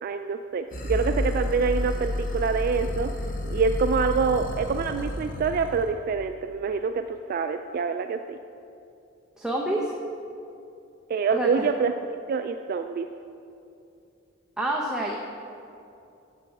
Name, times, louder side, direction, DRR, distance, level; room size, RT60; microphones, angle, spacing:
voice 1, 0.0-3.1 3.5-8.4 11.1-11.9 12.3-13.1, right 5 dB, 50° right, 7 dB, 0.3 m, -26 dB
sound 1, 0.7-5.9, left 1 dB, 45° left, 1.0 m, -30 dB
voice 2, 9.4-9.9 11.3-11.7 14.6-15.2, right 1 dB, 5° right, -3 dB, 0.7 m, -27 dB
8.0 x 6.8 x 7.1 m, 2.7 s
head